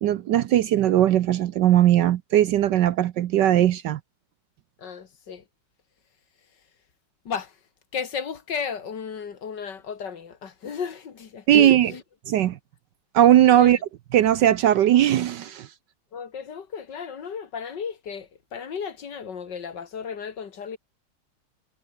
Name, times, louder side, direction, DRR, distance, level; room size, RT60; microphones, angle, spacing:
voice 1, 0.0-4.0 11.5-11.9 12.3-12.6 13.1-13.8 14.1-15.7, right 12 dB, 65° right, 1.2 m, -18 dB
voice 2, 4.8-5.4 7.3-7.6 7.9-12.0 13.5-13.8 16.1-20.8, left 6 dB, 60° left, 2.3 m, -34 dB
omnidirectional pair, 2.3 m